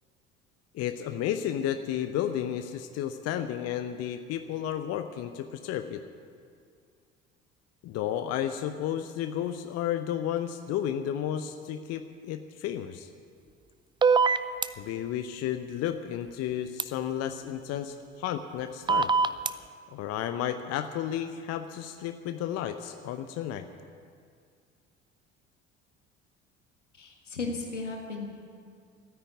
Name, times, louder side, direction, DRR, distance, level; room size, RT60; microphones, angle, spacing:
voice 1, 0.7-6.0 7.8-13.1 14.8-19.1 19.9-23.7, left 10 dB, 45° left, 9 dB, 0.8 m, -32 dB
sound 1, 14.0-14.7 16.8-16.9 18.9-19.5, right 5 dB, 15° right, 0.4 m, -22 dB
voice 2, 27.0-28.3, left 3 dB, 80° left, 2 dB, 1.7 m, -35 dB
13.0 x 10.0 x 9.4 m, 2.2 s
figure-of-eight pair, 60°, 35 cm